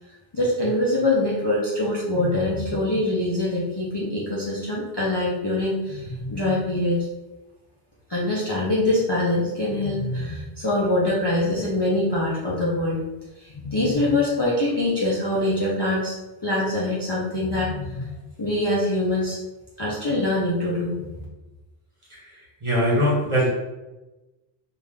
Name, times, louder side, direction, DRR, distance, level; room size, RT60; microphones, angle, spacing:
voice 1, 0.3-7.0 8.1-13.0 13.4-16.2 16.4-19.4 19.8-21.1, left 1 dB, 30° left, -7 dB, 0.5 m, -24 dB
voice 2, 22.1-23.5, equal, 30° right, -5 dB, 1.0 m, -22 dB
3.5 x 2.5 x 3.3 m, 1.1 s
omnidirectional pair, 1.1 m